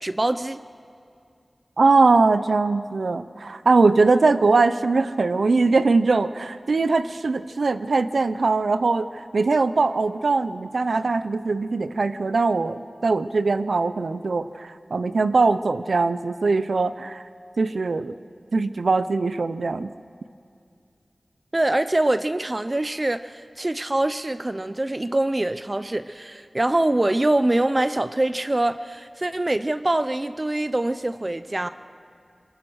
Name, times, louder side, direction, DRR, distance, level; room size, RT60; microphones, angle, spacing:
voice 1, 0.0-0.6 21.5-31.7, right 1 dB, 35° right, 11 dB, 0.6 m, -24 dB
voice 2, 1.8-17.2 17.6-18.2 18.5-19.9, right 3 dB, 90° right, 12 dB, 0.5 m, -21 dB
22.5 x 21.5 x 6.4 m, 2.4 s
wide cardioid pair, 55°, 0 cm